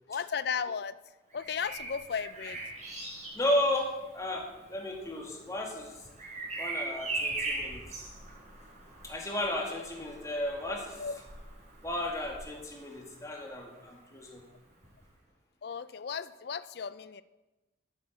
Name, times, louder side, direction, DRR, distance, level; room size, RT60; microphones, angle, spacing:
voice 1, 0.1-1.0 1.3-2.6 9.7-9.8 11.0-11.2 15.6-17.2, left 6 dB, 60° left, 16 dB, 0.4 m, -35 dB
Bird vocalization bird call bird song, 1.3-13.1 14.8-15.0, right 2 dB, 40° right, 4.6 m, -40 dB
voice 2, 3.3-6.0 6.6-8.0 9.0-11.0 11.8-14.4, left 1 dB, 20° left, 0 dB, 2.0 m, -34 dB
10.0 x 8.0 x 8.0 m, 1.1 s
head